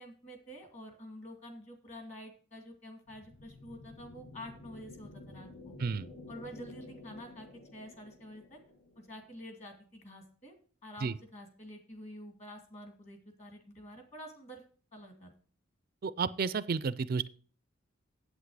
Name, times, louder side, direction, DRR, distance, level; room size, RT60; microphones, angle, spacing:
voice 1, 0.0-5.8 6.3-8.6 9.0-10.5 10.8-14.6 14.9-15.3, equal, 30° left, 5 dB, 2.2 m, -48 dB
sound 1, 3.1-9.6, left 2 dB, 80° left, 2.2 m, -51 dB
voice 2, 16.0-17.3, right 5 dB, 45° right, 16 dB, 0.4 m, -32 dB
8.3 x 8.1 x 4.8 m, 0.43 s
head